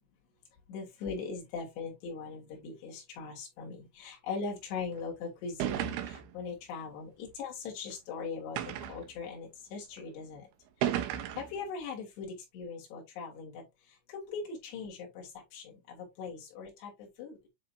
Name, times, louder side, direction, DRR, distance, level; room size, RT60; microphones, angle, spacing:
voice 1, 0.7-10.5 11.4-13.6 14.1-17.4, left 5 dB, 60° left, 4.8 m, -40 dB
sound 1, 5.0-5.1 5.6-6.4 7.3-7.4 8.6-9.1 10.0-10.1 10.8-11.6, right 11 dB, 80° right, 2.3 m, -33 dB
10.5 x 3.9 x 2.7 m
omnidirectional pair, 5.6 m